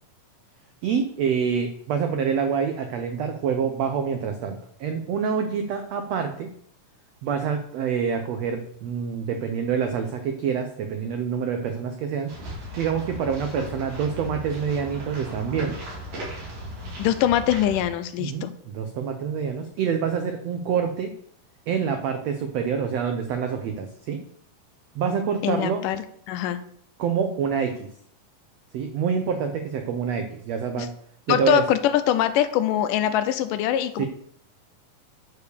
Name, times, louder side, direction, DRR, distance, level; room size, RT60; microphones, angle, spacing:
voice 1, 0.8-6.5 7.2-12.3 12.8-15.7 18.2-21.1 21.7-24.2 24.9-25.8 27.0-27.9 28.7-30.9 31.3-31.6 34.0-34.1, right 6 dB, 85° right, 6 dB, 1.4 m, -26 dB
sound 1, 12.3-17.8, equal, 70° right, 4.5 m, -37 dB
voice 2, 17.0-18.5 25.4-26.6 30.8-30.9 31.3-34.1, left 11 dB, 80° left, 11 dB, 2.1 m, -23 dB
9.4 x 4.8 x 6.8 m, 0.65 s
omnidirectional pair, 4.0 m